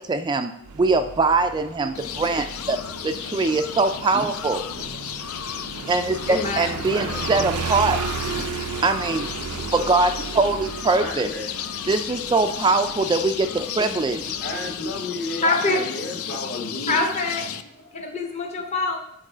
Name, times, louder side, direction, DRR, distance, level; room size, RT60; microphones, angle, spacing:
voice 1, 0.0-2.8 3.0-4.6 5.9-8.0 8.8-9.3 9.7-11.3 11.9-14.4, right 3 dB, 20° right, 7 dB, 0.3 m, -22 dB
Motorcycle, 0.7-15.0, right 5 dB, 90° right, 0.5 m, -35 dB
sound 1, 1.9-17.6, left 9 dB, 75° left, 0.4 m, -34 dB
voice 2, 2.9-3.3 4.7-4.9 6.9-7.2 10.9-11.5 14.4-17.0, left 2 dB, 55° left, 0 dB, 1.6 m, -33 dB
voice 3, 6.3-7.0 15.4-15.9 16.9-19.0, left 2 dB, 30° left, 1 dB, 0.8 m, -25 dB
7.6 x 4.0 x 5.0 m, 0.74 s
head